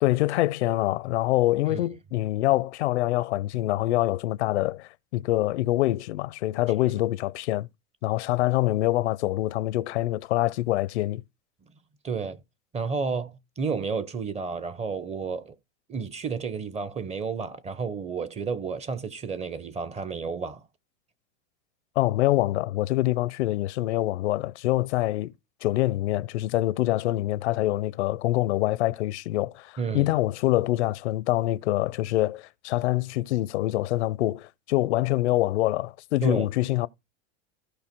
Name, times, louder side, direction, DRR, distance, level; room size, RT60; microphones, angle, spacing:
voice 1, 0.0-7.7 8.0-11.2 22.0-25.3 25.6-36.9, left 16 dB, 85° left, 0.7 m, -25 dB
voice 2, 12.0-12.4 12.7-15.5 15.9-20.6 29.8-30.1 36.2-36.5, right 5 dB, 20° right, 0.8 m, -31 dB
15.0 x 5.1 x 4.5 m
supercardioid pair, 130°, 33 cm